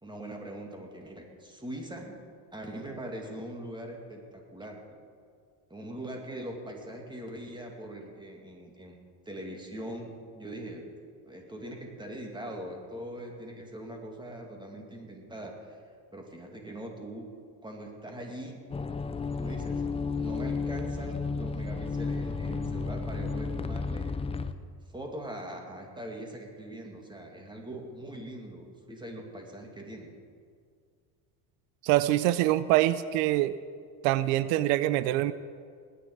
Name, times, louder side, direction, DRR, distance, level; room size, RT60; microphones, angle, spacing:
voice 1, 0.0-2.2 2.5-4.8 5.7-9.0 9.3-10.9 11.3-15.8 16.1-17.3 17.6-18.6 19.4-19.8 20.2-24.1 24.9-30.2, right 1 dB, 10° right, 1 dB, 2.4 m, -41 dB
sound 1, 18.7-24.5, left 4 dB, 15° left, 0.4 m, -32 dB
voice 2, 31.8-33.6 34.0-35.3, right 15 dB, 90° right, 15 dB, 0.6 m, -24 dB
20.0 x 9.8 x 4.8 m, 2.1 s
cardioid pair, 105°, 49 cm